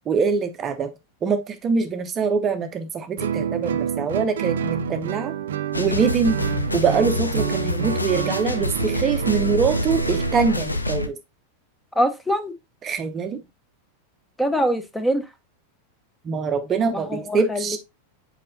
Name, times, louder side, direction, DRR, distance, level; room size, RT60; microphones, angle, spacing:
voice 1, 0.1-0.9 1.2-5.3 5.8-6.4 6.7-11.2 12.8-13.4 16.2-17.8, right 5 dB, 25° right, 0.7 m, -24 dB
Guitar, 3.2-10.6, right 9 dB, 60° right, 0.5 m, -28 dB
sound 1, 5.7-11.1, left 1 dB, 80° left, 0.7 m, -26 dB
voice 2, 11.9-12.5 14.4-15.3 16.9-17.8, equal, 5° left, 0.9 m, -23 dB
7.6 x 4.9 x 2.6 m
figure-of-eight pair, 90°, 0 cm